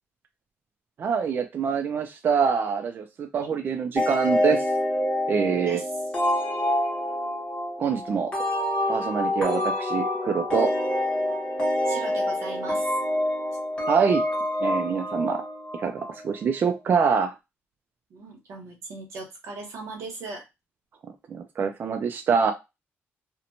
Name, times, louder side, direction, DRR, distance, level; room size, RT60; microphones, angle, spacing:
voice 1, 1.0-4.6 5.3-5.8 7.8-8.3 8.9-10.7 13.9-14.2 14.6-15.4 15.7-17.3 21.3-22.5, right 6 dB, 45° right, 5 dB, 0.3 m, -25 dB
sound 1, 4.0-16.4, left 1 dB, 25° left, 1.1 m, -27 dB
voice 2, 11.9-12.9 18.1-20.4, right 3 dB, 90° right, 2 dB, 1.0 m, -38 dB
2.9 x 2.1 x 2.5 m, 0.23 s
cardioid pair, 135°, 5 cm